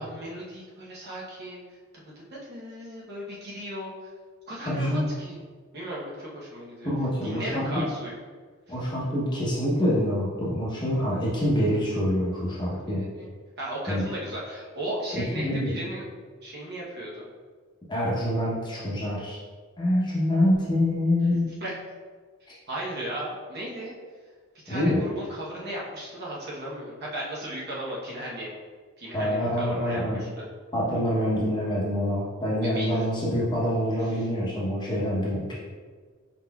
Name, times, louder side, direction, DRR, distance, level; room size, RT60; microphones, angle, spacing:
voice 1, 0.0-1.6 2.5-3.9 4.5-5.4 5.7-6.9 7.2-8.2 12.0-13.3 13.6-16.1 16.4-17.2 21.6-21.8 22.7-23.9 24.6-28.5 29.0-30.4 32.6-33.0 34.1-34.3, right 1 dB, 45° right, -5 dB, 0.9 m, -36 dB
voice 2, 4.6-5.1 6.8-7.7 8.7-13.0 13.9-14.0 15.1-15.8 17.9-19.4 19.8-21.5 24.7-25.0 29.1-30.2 30.7-35.5, equal, 20° left, -6 dB, 0.8 m, -26 dB
4.4 x 3.9 x 2.3 m, 1.5 s
head